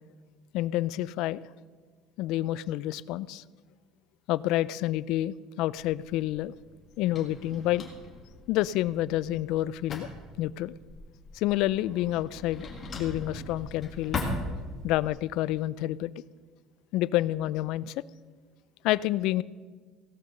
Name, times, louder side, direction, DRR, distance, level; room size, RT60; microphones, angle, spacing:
voice 1, 0.5-1.4 2.2-3.4 4.3-6.5 7.0-7.9 8.5-10.1 10.4-10.7 11.3-12.7 13.0-14.2 14.8-16.1 16.9-18.0 18.8-19.4, left 15 dB, 60° left, 20 dB, 0.3 m, -28 dB
Drawer open or close, 5.8-15.1, left 2 dB, 25° left, 1.8 m, -40 dB
16.5 x 6.8 x 6.5 m, 1.5 s
cardioid pair, 170°, 0 cm